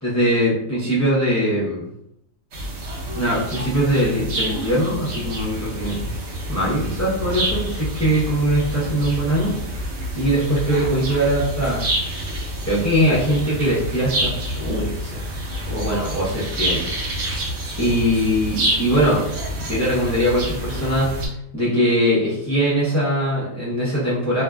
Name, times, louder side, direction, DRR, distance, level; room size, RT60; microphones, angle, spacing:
voice 1, 0.0-1.8 3.1-6.1 6.5-9.9 10.1-11.9 12.6-15.3 15.7-16.9 17.8-19.3 19.5-21.2 21.5-24.4, equal, 25° left, -8 dB, 0.4 m, -21 dB
sound 1, 2.5-21.3, right 1 dB, 70° right, 0.9 m, -28 dB
2.5 x 2.3 x 2.2 m, 0.76 s
omnidirectional pair, 1.5 m